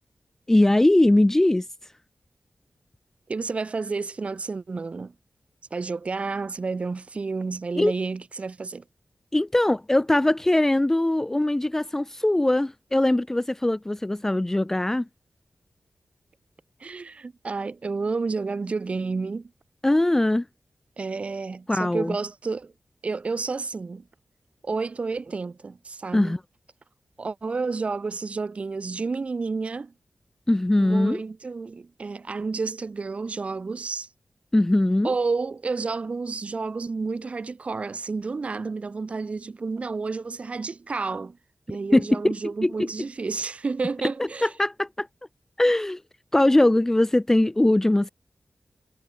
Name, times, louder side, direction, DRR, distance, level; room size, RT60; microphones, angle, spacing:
voice 1, 0.5-1.6 7.8-7.9 9.3-15.1 19.8-20.4 21.7-22.2 26.1-26.4 30.5-31.2 34.5-35.1 41.9-42.2 42.6-42.9 44.4-45.1 45.6-46.0 46.3-48.1, left 1 dB, 15° left, 0.4 m, -21 dB
voice 2, 3.3-5.1 5.7-8.8 16.8-19.5 21.0-22.7 23.0-24.0 24.6-26.3 27.2-29.9 30.8-34.1 35.0-41.4 41.7-44.5, right 4 dB, 50° right, 2.8 m, -30 dB
wide cardioid pair, 95°, 3 cm